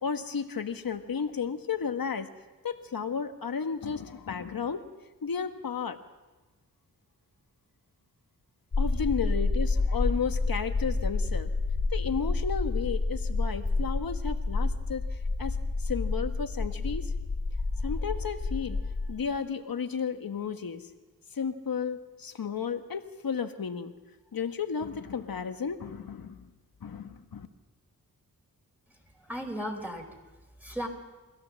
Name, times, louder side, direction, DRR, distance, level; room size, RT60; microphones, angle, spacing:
voice 1, 0.0-2.3 2.6-4.8 5.2-6.0 8.8-11.5 11.9-15.0 15.4-15.6 15.8-17.1 17.8-18.8 19.1-20.9 21.3-23.9 24.3-26.4 26.8-27.5, left 6 dB, 75° left, 7 dB, 1.4 m, -33 dB
sound 1, 8.7-19.1, left 3 dB, 45° left, 2.8 m, -29 dB
voice 2, 28.9-30.2 30.6-30.9, equal, 5° right, 1 dB, 4.4 m, -36 dB
24.0 x 16.5 x 7.5 m, 1.2 s
wide cardioid pair, 110°, 35 cm